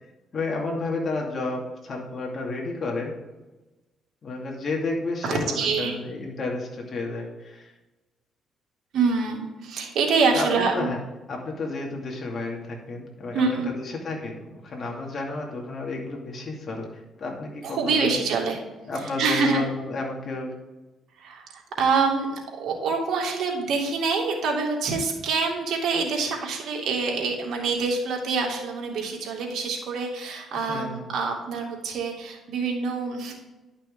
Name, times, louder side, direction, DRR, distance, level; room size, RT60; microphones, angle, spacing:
voice 1, 0.3-3.1 4.2-7.7 10.3-10.5 10.7-11.0 11.3-18.2 18.9-20.5 30.5-31.1, left 3 dB, 45° left, -1 dB, 2.5 m, -31 dB
voice 2, 5.2-6.0 8.9-10.9 13.3-13.7 17.6-18.6 19.0-19.7 21.2-33.3, right 4 dB, 70° right, 0 dB, 2.2 m, -26 dB
11.0 x 6.0 x 3.7 m, 1.1 s
cardioid pair, 90°, 0 cm